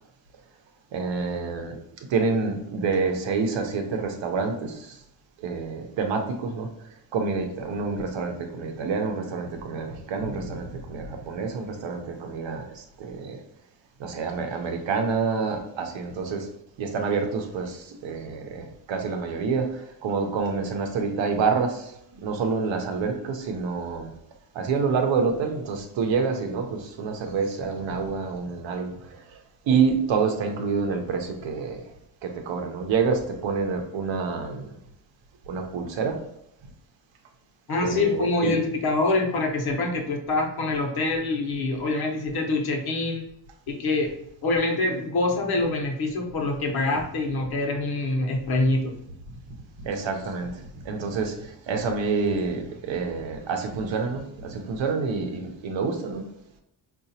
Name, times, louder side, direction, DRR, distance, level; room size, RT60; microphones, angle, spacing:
voice 1, 0.9-1.7 2.1-4.8 5.4-6.7 7.1-12.6 13.0-13.4 14.0-16.5 16.8-17.8 18.0-19.7 20.0-21.8 22.2-24.1 24.6-28.9 29.7-31.8 32.2-34.7 35.5-36.1 37.8-38.5 49.8-50.5 50.9-51.3 51.7-56.2, right 5 dB, 85° right, 4 dB, 0.8 m, -27 dB
voice 2, 37.7-43.3 43.7-44.1 44.4-48.9, left 2 dB, 55° left, 1 dB, 0.9 m, -25 dB
4.8 x 2.4 x 2.7 m, 0.76 s
wide cardioid pair, 160°, 44 cm